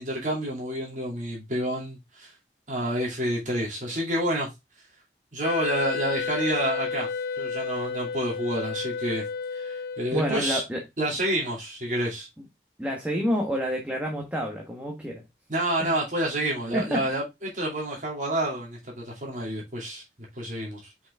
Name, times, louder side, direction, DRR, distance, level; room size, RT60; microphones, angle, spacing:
voice 1, 0.0-2.3 2.7-4.5 5.3-7.1 7.4-9.3 9.5-10.6 11.0-12.3 15.5-20.0 20.3-20.9, right 1 dB, 45° right, 2.5 m, -29 dB
Wind instrument woodwind instrument, 5.4-10.6, left 5 dB, 55° left, 0.5 m, -32 dB
voice 2, 10.1-10.8 12.8-15.2 15.8-15.9 16.7-17.1, equal, 5° right, 1.2 m, -28 dB
5.7 x 5.3 x 3.5 m
head